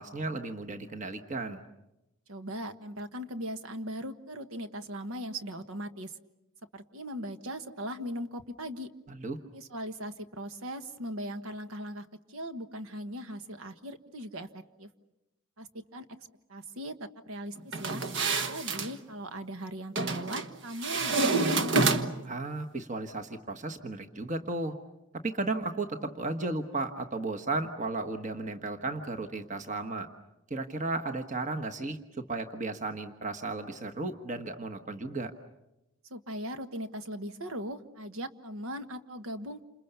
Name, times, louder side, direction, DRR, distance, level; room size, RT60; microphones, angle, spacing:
voice 1, 0.0-1.6 9.1-9.4 22.2-24.7 25.2-30.1 30.5-32.0 32.3-35.3, right 2 dB, 35° right, 5 dB, 1.3 m, -34 dB
voice 2, 2.3-6.2 6.7-8.9 9.5-14.9 15.6-16.1 16.5-18.0 18.5-22.0 36.1-39.6, equal, 80° right, 9 dB, 1.4 m, -39 dB
sound 1, 17.7-18.9 20.0-20.5 20.8-22.3, right 3 dB, 55° right, 1.3 m, -28 dB
28.5 x 27.5 x 6.9 m, 0.93 s
head